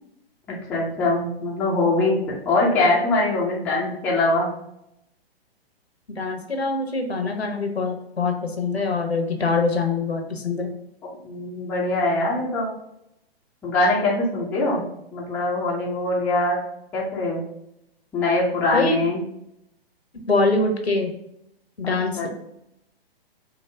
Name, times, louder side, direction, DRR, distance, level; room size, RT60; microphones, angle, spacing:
voice 1, 0.5-4.5 11.2-12.7 13.6-14.8 15.1-16.6 16.9-17.4 18.1-19.2 21.8-22.3, left 2 dB, 5° left, -5 dB, 0.3 m, -23 dB
voice 2, 6.2-10.7 18.7-18.9 20.3-21.1 21.8-22.3, left 3 dB, 90° left, 4 dB, 0.9 m, -24 dB
4.6 x 2.0 x 3.3 m, 0.79 s
figure-of-eight pair, 125°, 30 cm